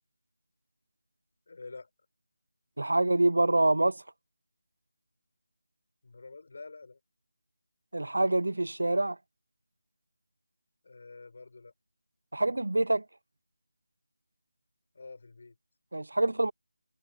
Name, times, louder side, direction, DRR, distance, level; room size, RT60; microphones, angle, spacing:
voice 1, 1.5-1.9 6.0-7.0 10.8-11.7 14.9-15.6, left 3 dB, 50° left, 7.2 m, -47 dB
voice 2, 2.8-4.0 7.9-9.2 12.3-13.0 15.9-16.5, right 2 dB, 85° right, 0.4 m, -26 dB
figure-of-eight pair, 170°, 0 cm